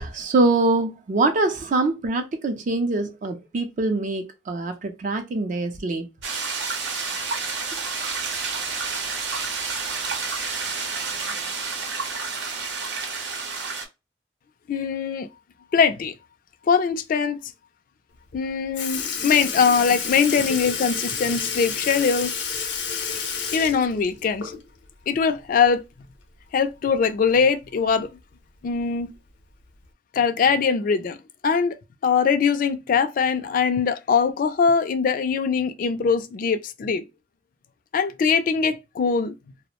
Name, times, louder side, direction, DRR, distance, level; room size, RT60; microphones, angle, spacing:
voice 1, 0.0-6.1 8.0-8.4, right 2 dB, 45° right, 0.4 m, -24 dB
sound 1, 6.2-13.8, right 4 dB, 80° right, 0.7 m, -29 dB
voice 2, 14.7-15.3 15.7-16.1 16.7-17.4 18.3-22.3 23.5-24.5 25.1-25.8 26.5-28.1 28.6-29.1 30.1-31.2 31.4-37.0 37.9-39.3, left 6 dB, 50° left, 0.3 m, -22 dB
Sink (filling or washing) / Liquid, 18.3-18.4 18.7-24.8 25.2-25.3 26.8-26.9 27.9-28.0 28.8-29.0 29.8-29.9, left 6 dB, 85° left, 0.6 m, -30 dB
2.4 x 2.0 x 2.8 m
head